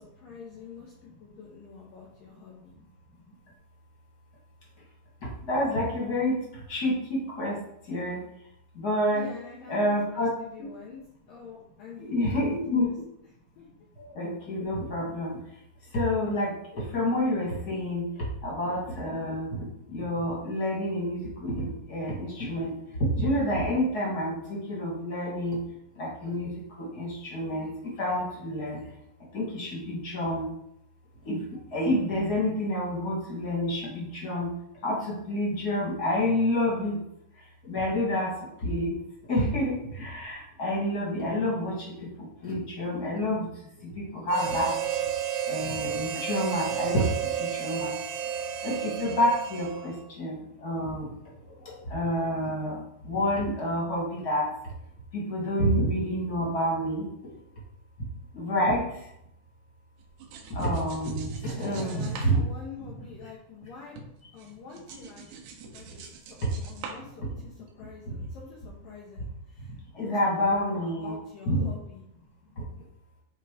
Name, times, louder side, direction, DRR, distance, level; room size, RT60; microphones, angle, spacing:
voice 1, 0.0-2.7 9.1-11.0 11.3-12.6 13.6-13.7 61.5-64.0 64.3-65.3 65.7-72.0, left 6 dB, 85° left, -3 dB, 1.9 m, -46 dB
voice 2, 5.2-7.6 7.9-8.2 8.7-9.3 9.7-10.3 10.6-10.7 12.0-12.9 14.0-15.4 15.9-18.0 18.4-25.6 25.9-26.5 26.8-28.8 29.3-30.5 31.2-34.5 34.8-37.0 37.6-38.3 38.6-38.9 39.3-43.5 43.8-44.7 45.5-48.0 48.6-51.1 51.8-54.5 55.1-57.0 58.3-58.9 60.5-62.4 69.9-71.2 71.4-71.7, equal, 35° left, -5 dB, 1.7 m, -28 dB
Harmonica, 44.3-50.1, right 8 dB, 90° right, 3.5 m, -32 dB
sound 1, 60.0-63.7 64.0-67.7, right 5 dB, 70° right, 2.7 m, -45 dB
10.5 x 3.5 x 5.1 m, 0.76 s
omnidirectional pair, 5.6 m